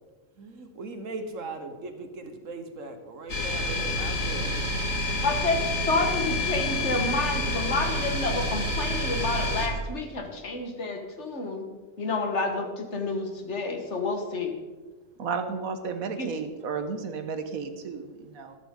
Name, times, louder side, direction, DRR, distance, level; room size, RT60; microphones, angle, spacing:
voice 1, 0.4-4.8, right 3 dB, 70° right, 7 dB, 1.5 m, -39 dB
sound 1, 3.3-9.7, left 1 dB, 70° left, 2.1 m, -28 dB
voice 2, 5.2-11.7 12.0-14.5 16.2-16.3, left 3 dB, 55° left, 4 dB, 1.8 m, -29 dB
voice 3, 15.2-18.6, right 5 dB, 85° right, 7 dB, 1.6 m, -33 dB
13.5 x 12.5 x 3.8 m, 1.3 s
omnidirectional pair, 1.4 m